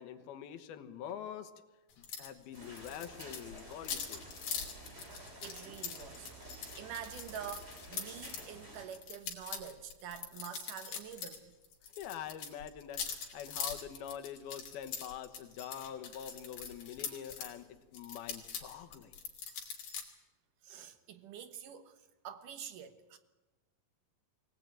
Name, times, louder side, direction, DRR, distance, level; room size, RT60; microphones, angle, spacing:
voice 1, 0.0-1.5 2.0-4.3 11.9-19.1, left 9 dB, 75° left, 8 dB, 3.1 m, -45 dB
sound 1, 2.0-2.3 2.5-8.4 8.9-11.4 11.6-17.5 17.9-20.0, left 6 dB, 60° left, 4.3 m, -42 dB
sound 2, 2.5-8.9, right 1 dB, 15° right, 4.4 m, -51 dB
voice 2, 5.4-11.5 20.6-23.2, right 9 dB, 65° right, 10 dB, 2.5 m, -47 dB
23.0 x 18.0 x 9.0 m, 1.1 s
omnidirectional pair, 4.4 m